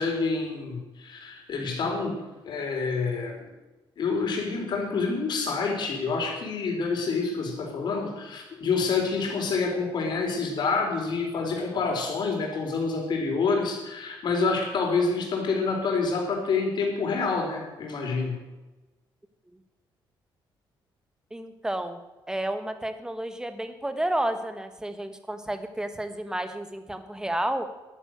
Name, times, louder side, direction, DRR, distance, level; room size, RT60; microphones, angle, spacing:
voice 1, 0.0-2.2 2.4-3.5 4.0-18.4, left 4 dB, 55° left, 1 dB, 4.4 m, -27 dB
voice 2, 21.3-22.0 22.3-27.7, right 1 dB, 10° right, 9 dB, 1.4 m, -31 dB
11.5 x 10.0 x 8.0 m, 1.1 s
cardioid pair, 120°, 9 cm